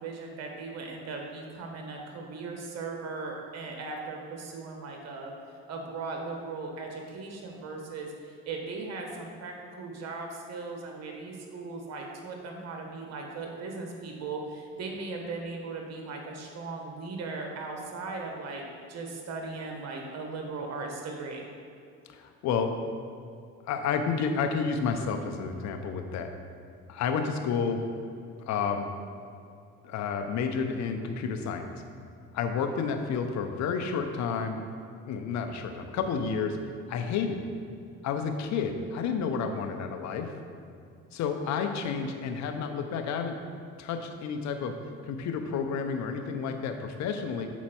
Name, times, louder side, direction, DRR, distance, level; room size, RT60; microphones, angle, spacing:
voice 1, 0.0-5.3 5.7-21.4, right 3 dB, 55° right, 2 dB, 1.2 m, -38 dB
voice 2, 22.1-22.8 23.7-26.3 26.9-27.8 28.5-28.9 29.8-31.7 32.3-34.6 35.1-36.6 36.9-37.4 38.0-40.3 41.1-43.4 43.8-44.7 45.0-47.5, left 6 dB, 65° left, 6 dB, 0.8 m, -30 dB
7.2 x 4.3 x 4.4 m, 2.5 s
supercardioid pair, 80°, 30 cm